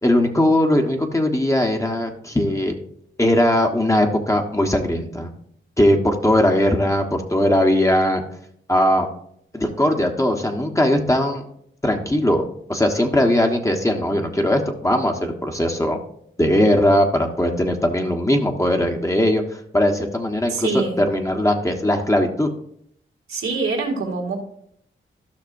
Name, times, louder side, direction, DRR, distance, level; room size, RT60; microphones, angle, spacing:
voice 1, 0.0-2.7 3.2-5.3 5.8-8.2 8.7-9.1 9.5-11.4 11.8-12.4 12.7-16.0 16.4-20.7 21.0-22.5, left 1 dB, 15° left, 3 dB, 1.2 m, -19 dB
voice 2, 20.5-21.1 23.3-24.4, right 4 dB, 80° right, -2 dB, 2.2 m, -25 dB
14.0 x 6.0 x 2.6 m, 0.69 s
cardioid pair, 60°, 21 cm